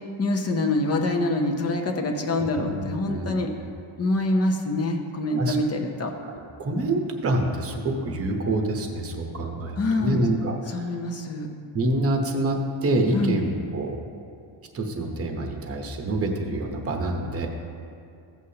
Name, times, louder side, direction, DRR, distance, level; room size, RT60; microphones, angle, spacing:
voice 1, 0.2-3.5 4.0-6.1 9.8-10.2 10.7-11.5 13.1-13.4, left 2 dB, 30° left, 2 dB, 0.7 m, -25 dB
voice 2, 2.6-3.4 5.4-5.6 6.2-10.9 11.7-14.0 14.7-17.5, right 1 dB, 30° right, 3 dB, 0.9 m, -27 dB
14.5 x 8.2 x 2.8 m, 2.4 s
cardioid pair, 170°, 48 cm